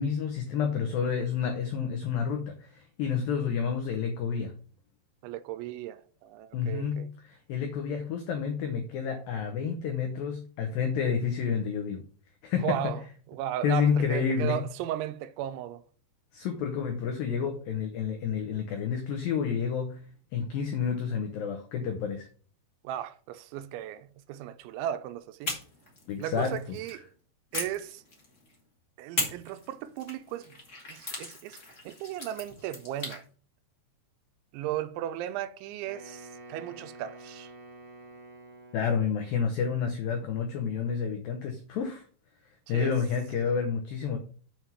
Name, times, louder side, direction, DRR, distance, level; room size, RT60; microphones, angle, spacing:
voice 1, 0.0-4.5 6.5-12.1 12.4-12.9 13.6-14.6 16.3-20.0 20.3-22.3 26.1-26.8 38.7-42.1 42.7-44.2, left 6 dB, 80° left, 2.0 m, -29 dB
voice 2, 5.2-7.1 12.6-13.0 13.3-15.8 22.8-25.5 26.2-27.1 27.5-28.0 29.0-30.6 30.9-31.6 31.9-33.2 34.5-37.5 42.7-43.0, right 12 dB, 85° right, 2.9 m, -36 dB
sound 1, 25.4-27.0 27.5-28.5 29.1-33.2, left 2 dB, 45° left, 0.9 m, -38 dB
Wind instrument woodwind instrument, 35.8-39.3, right 2 dB, 45° right, 2.3 m, -48 dB
7.5 x 4.7 x 5.6 m
omnidirectional pair, 5.3 m